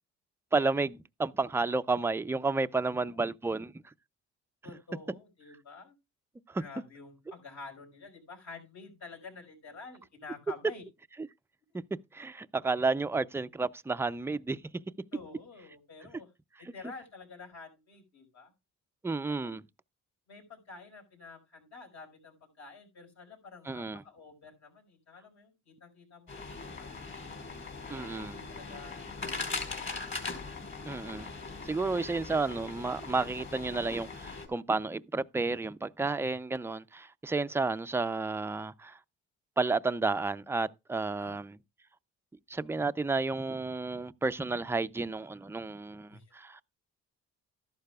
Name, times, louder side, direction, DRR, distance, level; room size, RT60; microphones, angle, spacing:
voice 1, 0.5-3.7 6.5-6.6 11.7-11.8 12.1-14.6 19.0-19.6 23.7-24.0 27.9-28.4 30.9-31.3 31.6-39.0 39.6-41.6 42.5-46.6, right 3 dB, 10° right, 0.4 m, -31 dB
voice 2, 2.7-3.3 4.6-5.9 6.6-10.8 11.7-11.8 15.1-16.3 16.6-18.5 19.3-19.6 20.3-27.1 27.8-30.1 36.2-36.4 37.5-37.6 41.2-41.4 46.1-46.3, left 4 dB, 65° left, 5.3 m, -50 dB
sound 1, 26.3-34.5, left 3 dB, 40° left, 4.3 m, -40 dB
13.5 x 11.5 x 2.3 m
cardioid pair, 90°, 30 cm